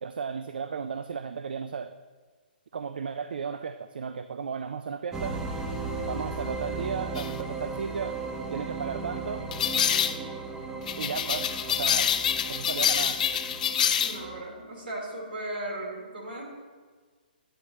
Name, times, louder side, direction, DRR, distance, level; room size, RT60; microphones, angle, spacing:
voice 1, 0.0-1.9 2.7-5.4 6.1-8.2 8.5-9.5 11.0-12.1 12.5-13.2, right 6 dB, 70° right, 10 dB, 0.3 m, -34 dB
sound 1, 5.1-14.4, right 3 dB, 10° right, 0.5 m, -36 dB
sound 2, 7.2-7.3 9.5-10.2 10.9-14.2, left 8 dB, 50° left, 0.4 m, -26 dB
voice 2, 14.0-16.4, right 1 dB, 85° right, -3 dB, 2.7 m, -36 dB
9.3 x 8.2 x 3.1 m, 1.5 s
hypercardioid pair, 135°, 5 cm